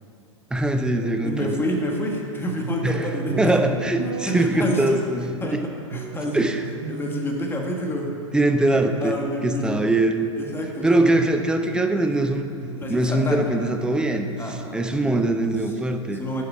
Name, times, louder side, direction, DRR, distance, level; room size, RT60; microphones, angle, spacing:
voice 1, 0.5-1.5 2.8-3.1 3.4-5.7 6.3-6.6 8.3-9.2 9.4-10.3 10.8-12.5 12.9-16.2, right 2 dB, 5° right, 6 dB, 0.6 m, -22 dB
sound 1, 0.9-9.6 11.0-15.6, right 4 dB, 60° right, 1.2 m, -37 dB
voice 2, 1.2-3.6 4.3-5.0 5.4-5.6 5.9-6.5 6.9-8.1 9.0-9.9 10.3-11.0 12.8-13.5 14.4-14.9 16.0-16.4, equal, 15° left, 0 dB, 1.6 m, -28 dB
11.0 x 6.6 x 5.0 m, 2.4 s
figure-of-eight pair, 95°, 16 cm